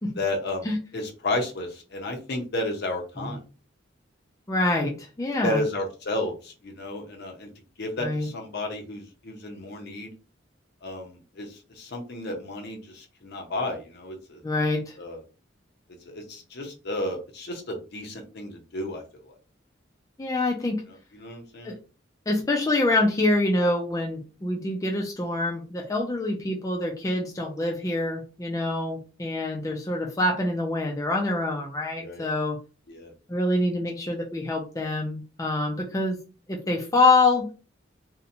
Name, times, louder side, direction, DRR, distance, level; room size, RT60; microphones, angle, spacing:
voice 1, 0.2-0.7 0.9-3.4 5.4-7.5 7.8-10.1 10.8-14.4 15.0-15.2 16.1-19.0 21.1-21.7 32.0-32.2 32.9-33.1, left 2 dB, 60° left, 2 dB, 0.7 m, -32 dB
voice 2, 4.5-5.6 8.0-8.3 14.4-15.0 20.2-20.8 21.6-21.8 22.3-32.6 33.3-36.2 36.5-37.7, left 2 dB, 15° left, 1 dB, 0.4 m, -25 dB
2.8 x 2.1 x 2.6 m, 0.33 s
head